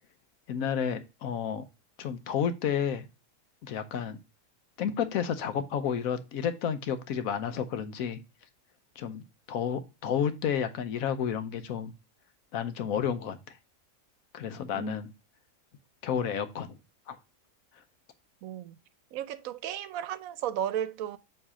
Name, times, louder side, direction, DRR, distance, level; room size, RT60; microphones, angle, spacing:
voice 1, 0.5-1.6 2.0-3.1 3.6-4.2 4.8-8.2 9.0-9.2 9.5-11.9 12.5-13.4 14.3-15.1 16.0-16.7 17.1-17.2, left 8 dB, 85° left, 1.2 m, -31 dB
voice 2, 14.7-15.0 18.4-18.8 19.1-21.2, right 10 dB, 80° right, 1.0 m, -34 dB
7.2 x 3.3 x 4.9 m
omnidirectional pair, 1.4 m